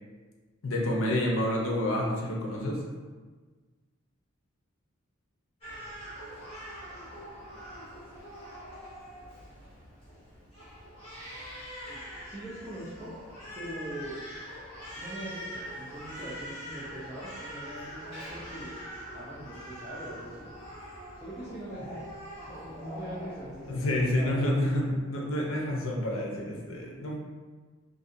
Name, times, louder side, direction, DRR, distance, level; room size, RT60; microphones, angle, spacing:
voice 1, 0.6-2.8 23.7-27.2, left 1 dB, 65° left, -1 dB, 0.5 m, -28 dB
Crying sobbing, 5.6-24.4, equal, 25° left, 0.8 m, -43 dB
voice 2, 11.9-13.1 13.6-14.2 14.9-18.7 19.1-20.5 21.2-22.0 22.4-25.0, right 1 dB, 10° right, -12 dB, 0.4 m, -42 dB
2.6 x 2.5 x 2.5 m, 1.4 s
head